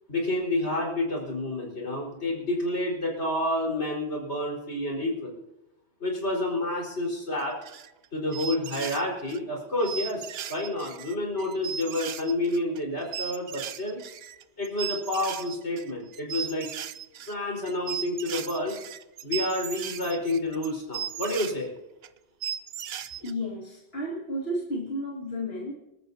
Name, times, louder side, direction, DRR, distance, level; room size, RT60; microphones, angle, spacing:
voice 1, 0.1-5.3 6.0-7.6 8.1-14.0 14.6-16.7 17.3-18.8 19.2-21.7, left 1 dB, 85° left, -1 dB, 4.9 m, -29 dB
sound 1, 7.4-8.0 8.3-9.4 9.8-21.5 22.0-22.1 22.4-23.3, right 9 dB, 70° right, 0.9 m, -37 dB
voice 2, 23.2-25.7, equal, 65° left, -3 dB, 2.5 m, -32 dB
26.0 x 13.5 x 2.8 m, 0.94 s
omnidirectional pair, 1.1 m